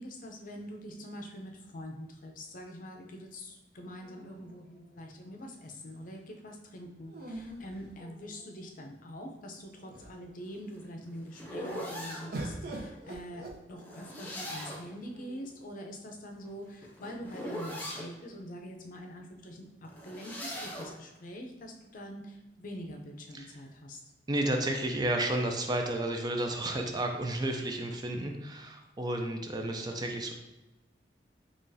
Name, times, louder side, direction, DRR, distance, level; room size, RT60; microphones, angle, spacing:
voice 1, 0.0-24.0, equal, 50° left, 2 dB, 0.5 m, -44 dB
sound 1, 4.0-5.1 7.1-8.6 9.4-9.5 9.8-10.4 12.3-14.2 15.1-15.8, right 1 dB, 60° right, 0.7 m, -44 dB
sound 2, 10.5-12.3 13.8-15.0 16.4-18.1 19.8-21.0, equal, 10° left, 0.7 m, -40 dB
voice 2, 24.3-30.3, right 1 dB, 25° right, 3 dB, 0.4 m, -32 dB
3.8 x 3.0 x 2.6 m, 1.1 s
head